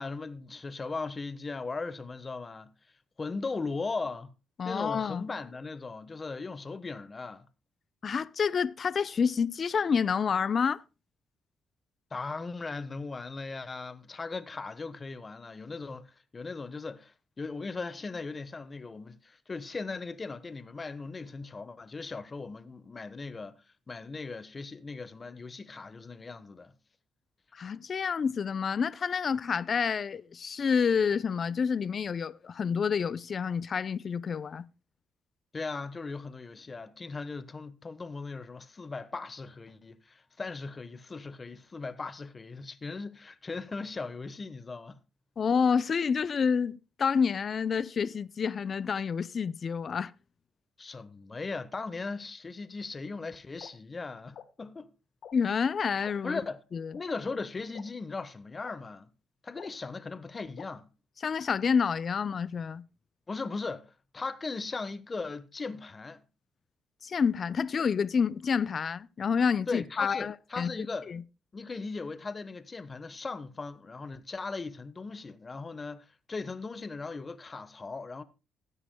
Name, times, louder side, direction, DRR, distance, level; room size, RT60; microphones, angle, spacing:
voice 1, 0.0-2.7 3.2-4.3 4.6-7.5 12.1-23.6 23.9-26.7 35.5-45.0 50.8-54.9 56.2-56.6 56.9-59.1 59.4-60.9 63.3-63.9 64.1-66.2 69.7-71.1 71.5-78.2, left 4 dB, 30° left, 1.1 m, -38 dB
voice 2, 4.6-5.3 8.0-10.8 27.5-34.6 45.4-50.1 55.3-56.4 56.7-57.0 61.2-62.8 67.0-70.7 71.1-71.2, left 6 dB, 45° left, 0.6 m, -28 dB
sound 1, 53.6-53.7 54.3-54.4 55.2-55.3 56.0-56.1 56.9-57.0 57.7-57.8 58.6-58.7 59.6-59.7 60.6-60.7, left 8 dB, 70° left, 1.2 m, -46 dB
18.0 x 9.8 x 2.2 m
cardioid pair, 90°, 0 cm